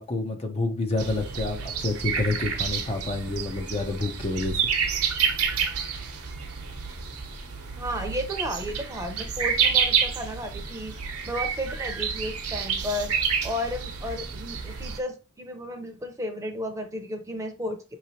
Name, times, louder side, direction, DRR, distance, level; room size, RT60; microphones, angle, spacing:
voice 1, 0.0-4.6, left 2 dB, 25° left, 0.6 m, -28 dB
sound 1, 1.0-15.0, right 6 dB, 75° right, 1.0 m, -29 dB
voice 2, 7.8-10.9 11.3-13.1 13.4-17.8, equal, 15° right, 0.7 m, -33 dB
5.9 x 3.1 x 2.8 m
head